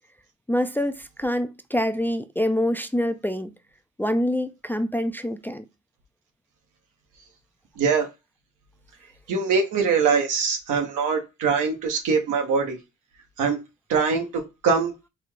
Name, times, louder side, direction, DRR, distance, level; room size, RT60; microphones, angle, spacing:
voice 1, 0.5-3.5 4.0-5.7, left 1 dB, 5° left, 0.3 m, -25 dB
voice 2, 7.8-8.1 9.3-12.8 13.4-13.6 13.9-14.9, right 5 dB, 85° right, 1.2 m, -23 dB
4.0 x 2.4 x 4.5 m
cardioid pair, 90°, 30 cm